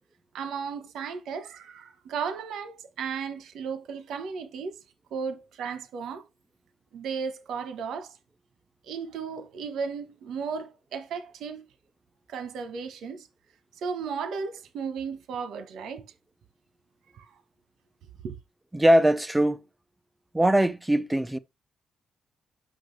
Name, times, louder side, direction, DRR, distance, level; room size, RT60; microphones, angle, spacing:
voice 1, 0.3-4.8 5.1-6.2 6.9-8.2 8.8-11.6 12.3-13.3 13.8-16.0 17.1-17.3 18.2-18.4, right 6 dB, 80° right, 1.2 m, -35 dB
voice 2, 18.7-19.6 20.3-21.4, right 1 dB, 10° right, 0.6 m, -21 dB
7.8 x 6.3 x 3.3 m
cardioid pair, 115°, 0 cm